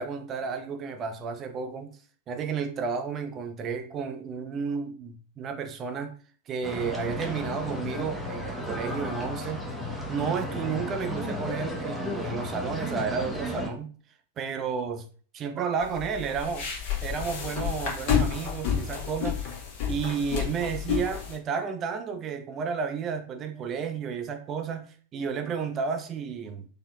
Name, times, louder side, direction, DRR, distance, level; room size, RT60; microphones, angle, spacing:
voice 1, 0.0-2.0 2.3-6.2 6.5-9.7 10.1-13.9 14.4-15.1 15.3-16.7 17.0-19.4 19.9-26.7, right 6 dB, 30° right, 0.5 m, -32 dB
sound 1, 6.6-13.7, left 1 dB, ahead, 0.8 m, -34 dB
sound 2, 15.8-21.4, left 7 dB, 45° left, 1.2 m, -30 dB
4.1 x 2.7 x 2.3 m
figure-of-eight pair, 90°, 0 cm